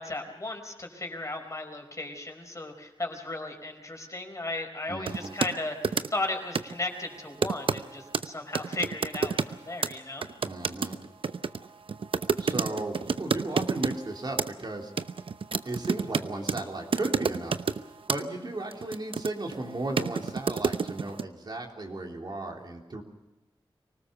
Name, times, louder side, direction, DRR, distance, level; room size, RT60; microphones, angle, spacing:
voice 1, 0.0-10.3, left 2 dB, 35° left, 4 dB, 4.7 m, -35 dB
voice 2, 4.9-5.4 10.4-11.0 12.4-14.9 15.6-17.6 18.1-23.0, right 2 dB, 55° right, 1 dB, 3.5 m, -35 dB
sound 1, 5.1-5.5 5.8-6.3 6.5-6.7 7.4-7.8 8.1-8.3 8.5-9.6 9.8-9.9 10.2-14.0 14.4-14.7 15.0-16.6 16.9-17.8 18.1-18.2 18.7-19.6 20.0-21.2, right 5 dB, 80° right, 0.8 m, -28 dB
25.0 x 18.5 x 6.9 m, 1.0 s
wide cardioid pair, 90°, 9 cm